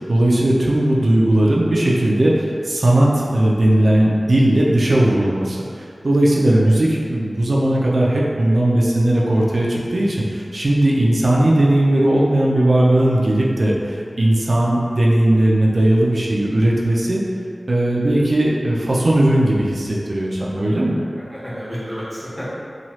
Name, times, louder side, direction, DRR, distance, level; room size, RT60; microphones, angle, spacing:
voice 1, 0.1-17.2 17.7-20.9, right 1 dB, 70° right, -4 dB, 0.4 m, -17 dB
voice 2, 11.3-11.6 21.3-22.5, equal, 25° left, -10 dB, 1.2 m, -31 dB
3.0 x 2.3 x 2.8 m, 2.3 s
wide cardioid pair, 60°, 0 cm